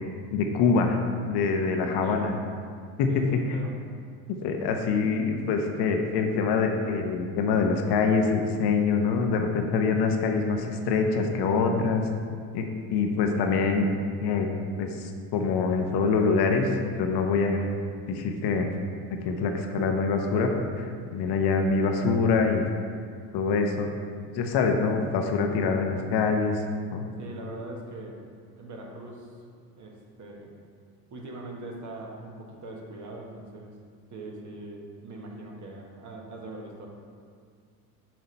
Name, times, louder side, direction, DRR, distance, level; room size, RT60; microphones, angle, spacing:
voice 1, 0.3-2.3 3.0-3.4 4.4-12.0 12.5-12.7 12.9-13.9 14.2-14.5 14.8-15.0 15.3-16.7 17.0-17.7 18.1-18.7 19.1-22.6 23.3-23.9 24.3-26.6 26.9-27.1, left 4 dB, 55° left, 4 dB, 0.9 m, -25 dB
voice 2, 3.1-3.7 21.3-21.4 27.2-28.2 28.6-29.3 29.8-30.5 31.1-33.7 34.1-36.9, right 2 dB, 40° right, 0 dB, 1.3 m, -41 dB
6.1 x 5.1 x 4.0 m, 2.1 s
hypercardioid pair, 85°, 47 cm